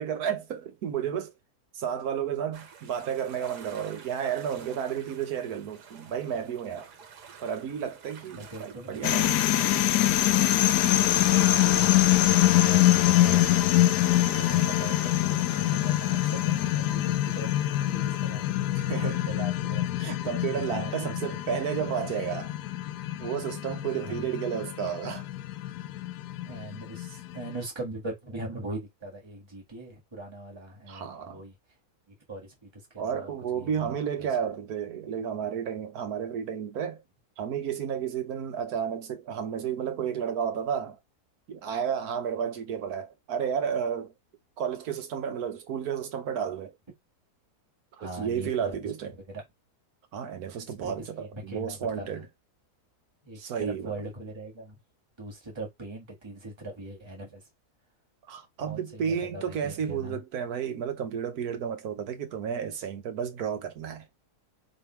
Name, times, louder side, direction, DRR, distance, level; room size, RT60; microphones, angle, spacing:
voice 1, 0.0-1.3 1.7-6.9 7.4-9.3 18.7-19.2 20.0-22.5 23.2-25.3 30.9-31.4 33.0-37.0 37.4-41.0 41.5-44.1 44.6-46.7 48.0-49.1 50.1-52.3 53.4-53.9 58.3-64.1, right 8 dB, 70° right, 1.4 m, -32 dB
sound 1, 2.5-16.7, right 6 dB, 90° right, 1.6 m, -49 dB
voice 2, 8.3-9.1 10.8-18.7 19.0-19.9 20.7-21.2 23.9-24.3 26.4-31.6 32.1-34.3 48.0-48.8 49.3-49.4 50.6-52.2 53.2-54.8 55.2-57.4 58.6-60.2, right 2 dB, 15° right, 1.8 m, -41 dB
sound 2, 9.0-27.5, left 14 dB, 90° left, 1.2 m, -25 dB
3.4 x 3.4 x 4.5 m
omnidirectional pair, 1.7 m